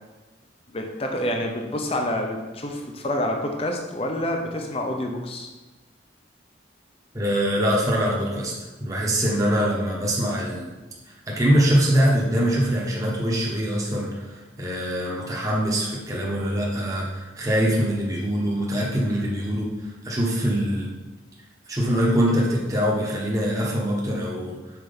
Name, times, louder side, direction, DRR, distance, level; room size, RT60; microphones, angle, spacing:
voice 1, 0.7-5.5, left 1 dB, 30° left, 2 dB, 0.6 m, -28 dB
voice 2, 7.1-8.5 8.8-10.7 11.3-20.9 21.7-24.6, equal, 20° right, -4 dB, 1.0 m, -23 dB
5.7 x 4.4 x 5.2 m, 1.2 s
head